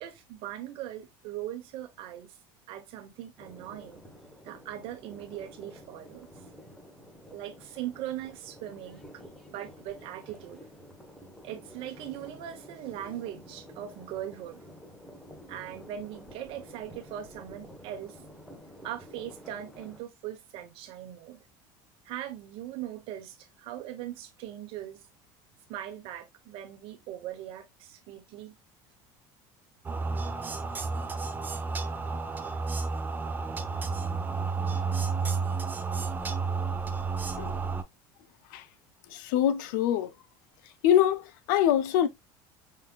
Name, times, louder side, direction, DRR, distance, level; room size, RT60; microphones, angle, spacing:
voice 1, 0.0-2.4 2.7-4.0 4.4-6.3 7.3-9.1 9.5-10.6 11.4-14.6 15.5-18.2 18.8-21.4 22.0-25.1 25.7-28.5, right 12 dB, 65° right, 1.1 m, -40 dB
sound 1, 3.4-20.0, equal, 5° left, 1.3 m, -50 dB
sound 2, 29.8-37.8, right 4 dB, 20° right, 0.5 m, -31 dB
voice 2, 39.1-40.1 40.6-42.1, left 10 dB, 90° left, 0.7 m, -25 dB
5.7 x 3.3 x 2.3 m
supercardioid pair, 125°, 10 cm